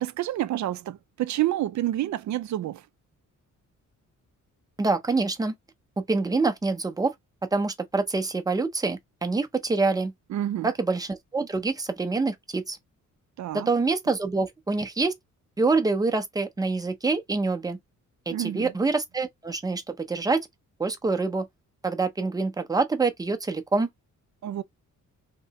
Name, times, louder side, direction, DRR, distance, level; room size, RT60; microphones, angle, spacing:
voice 1, 0.0-2.8 10.3-10.7 13.4-13.7 18.3-18.7 24.4-24.6, right 13 dB, 65° right, 0.4 m, -28 dB
voice 2, 4.8-5.5 6.0-7.1 7.5-10.1 10.6-12.8 13.5-15.2 15.6-17.8 18.3-20.4 20.8-21.5 21.8-23.9, right 3 dB, 10° right, 0.6 m, -26 dB
3.2 x 2.9 x 2.8 m
wide cardioid pair, 160°, 31 cm